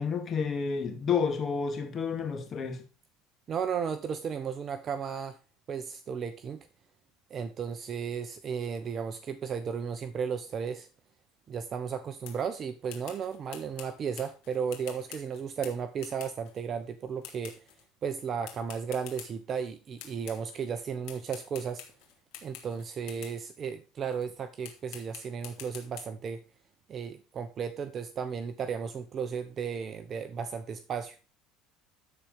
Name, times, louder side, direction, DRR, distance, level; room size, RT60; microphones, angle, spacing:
voice 1, 0.0-2.8, left 6 dB, 35° left, 2.3 m, -30 dB
voice 2, 3.5-5.4 5.7-6.7 7.3-10.9 11.5-17.6 18.0-21.8 22.4-26.4 26.9-31.2, right 6 dB, 40° right, 0.9 m, -34 dB
sound 1, 12.2-12.5 12.9-16.6 17.2-17.9 18.4-19.7 20.0-20.7 21.0-23.4 24.1-24.3 24.6-26.0, left 11 dB, 75° left, 2.7 m, -48 dB
13.0 x 4.5 x 5.3 m
supercardioid pair, 110°, 0 cm